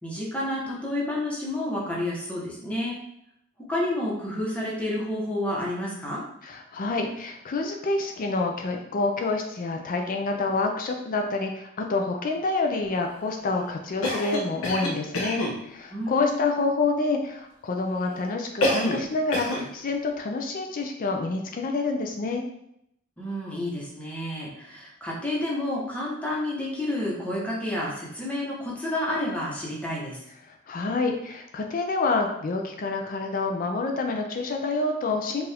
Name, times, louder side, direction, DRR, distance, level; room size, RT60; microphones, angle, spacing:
voice 1, 0.0-3.0 3.7-6.2 15.9-16.6 23.2-30.2, left 1 dB, 5° left, -5 dB, 1.0 m, -30 dB
voice 2, 6.4-22.4 30.7-35.5, left 3 dB, 40° left, 3 dB, 0.4 m, -27 dB
Cough, 14.0-15.6 18.6-19.1 19.3-19.7, left 1 dB, 70° left, 0.7 m, -26 dB
4.6 x 2.5 x 3.4 m, 0.77 s
head